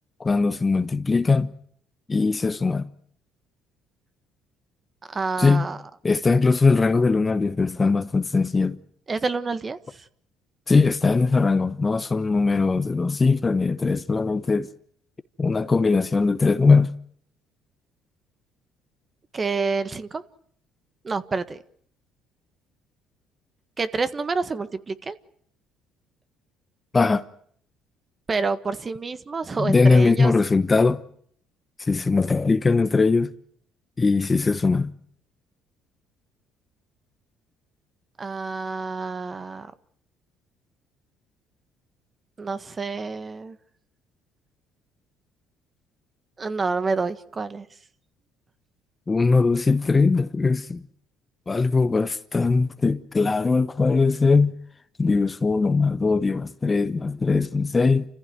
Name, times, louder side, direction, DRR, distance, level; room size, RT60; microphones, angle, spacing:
voice 1, 0.2-1.5 2.1-2.9 5.4-5.7 6.0-8.8 10.7-14.7 15.4-16.9 26.9-27.2 29.6-31.0 31.9-33.3 34.0-34.9 49.1-50.8 51.5-54.5 55.0-58.1, left 4 dB, 25° left, 1.0 m, -20 dB
voice 2, 5.1-5.8 9.1-10.0 19.3-20.2 21.0-21.6 23.8-25.2 28.3-30.3 38.2-39.7 42.4-43.6 46.4-47.6, right 4 dB, 30° right, 1.5 m, -28 dB
29.0 x 15.5 x 9.4 m
cardioid pair, 95°, 0 cm